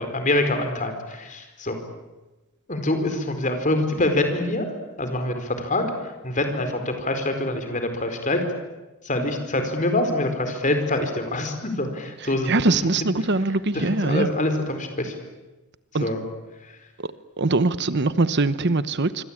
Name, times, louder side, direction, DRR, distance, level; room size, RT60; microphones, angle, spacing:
voice 1, 0.0-1.8 2.7-4.7 5.0-8.4 9.0-12.7 13.0-13.1 13.7-15.1 16.0-16.3 16.6-16.8, left 1 dB, 35° left, 6 dB, 4.5 m, -25 dB
voice 2, 12.4-14.3 15.9-16.1 17.0-19.2, right 3 dB, 50° right, 14 dB, 1.0 m, -22 dB
26.5 x 24.5 x 8.9 m, 1.1 s
head